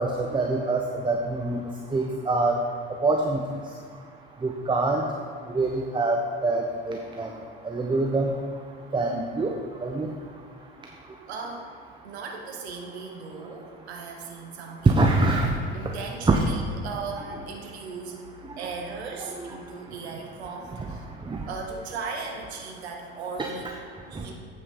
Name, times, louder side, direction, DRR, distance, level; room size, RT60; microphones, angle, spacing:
voice 1, 0.0-1.6 1.9-2.6 3.0-3.4 4.4-5.0 5.5-7.3 7.6-8.3 8.9-9.5 9.8-10.1 14.9-15.5 16.3-16.4 19.3-19.4 21.3-21.4, right 2 dB, 15° right, 2 dB, 0.7 m, -24 dB
voice 2, 11.3-11.7 12.0-15.2 15.7-18.2 18.6-21.1 21.5-23.7 24.1-24.3, right 4 dB, 80° right, 2 dB, 1.0 m, -37 dB
8.6 x 4.9 x 5.4 m, 2.1 s
hypercardioid pair, 65°, 32 cm